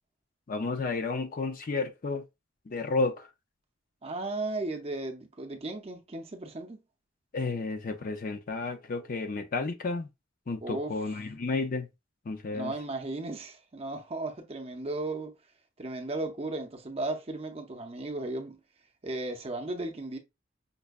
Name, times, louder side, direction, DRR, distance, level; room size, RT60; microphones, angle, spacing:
voice 1, 0.5-2.2 2.7-3.3 7.3-10.1 10.5-11.9 12.3-12.7, left 3 dB, 45° left, 0.5 m, -32 dB
voice 2, 4.0-6.8 10.6-10.9 12.5-15.3 15.8-18.6 19.0-20.2, right 2 dB, 30° right, 0.6 m, -35 dB
5.2 x 2.2 x 2.3 m
head